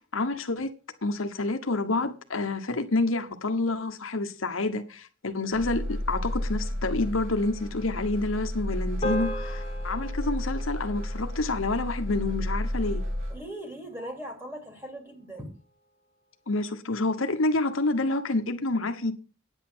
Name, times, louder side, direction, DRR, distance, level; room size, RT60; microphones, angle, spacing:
voice 1, 0.1-0.7 1.0-13.0 16.5-19.1, left 2 dB, 75° left, 1.2 m, -28 dB
sound 1, 5.5-13.4, left 1 dB, 70° right, 2.7 m, -32 dB
sound 2, 9.0-13.5, equal, 30° left, 1.9 m, -38 dB
voice 2, 13.3-15.5, right 1 dB, 10° right, 3.0 m, -39 dB
9.9 x 8.3 x 6.2 m
head